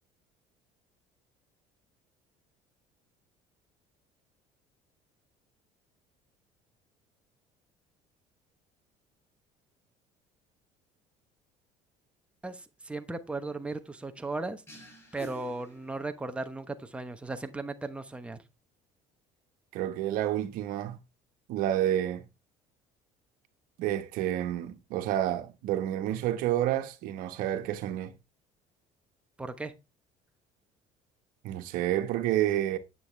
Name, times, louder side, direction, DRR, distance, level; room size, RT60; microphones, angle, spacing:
voice 1, 12.4-14.6 15.1-18.4 29.4-29.7, right 2 dB, 10° right, 1.0 m, -36 dB
sound 1, 14.7-16.4, right 1 dB, 15° left, 5.3 m, -49 dB
voice 2, 19.7-21.0 21.5-22.2 23.8-28.1 31.4-32.8, right 12 dB, 75° right, 1.3 m, -29 dB
9.8 x 8.0 x 3.3 m
cardioid pair, 115°, 15 cm